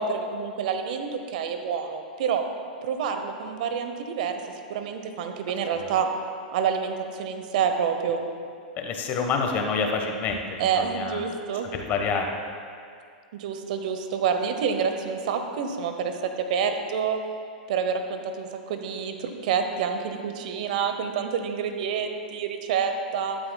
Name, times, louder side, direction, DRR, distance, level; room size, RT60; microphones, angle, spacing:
voice 1, 0.0-2.4 2.8-4.4 4.7-6.1 6.5-8.2 10.6-11.7 13.3-17.2 17.7-23.4, right 6 dB, 60° right, 6 dB, 0.9 m, -28 dB
voice 2, 8.8-11.2 11.7-12.3, left 5 dB, 35° left, 3 dB, 1.3 m, -27 dB
12.5 x 11.5 x 2.3 m, 2.2 s
hypercardioid pair, 110°, 5 cm